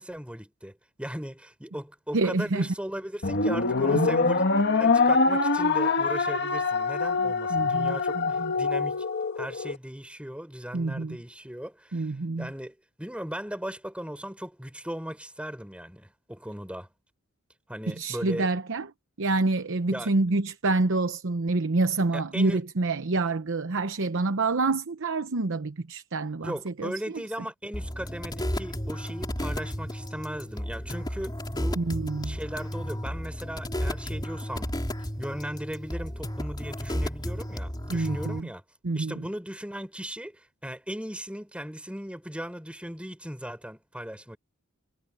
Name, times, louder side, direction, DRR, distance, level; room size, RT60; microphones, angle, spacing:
voice 1, 0.0-9.0 9.4-12.1 12.4-16.9 17.7-18.5 19.9-20.1 22.1-22.6 26.4-31.9 32.2-34.7 35.2-38.6 38.9-44.4, equal, 5° right, 4.6 m, -38 dB
voice 2, 2.1-2.7 3.9-4.1 7.2-8.5 10.7-11.2 11.9-12.5 18.0-18.9 19.2-26.9 31.8-32.4 37.9-38.5 38.8-39.2, right 3 dB, 65° right, 0.9 m, -27 dB
sound 1, 3.2-9.8, left 4 dB, 55° left, 1.8 m, -24 dB
sound 2, 27.7-38.4, equal, 20° left, 3.7 m, -33 dB
head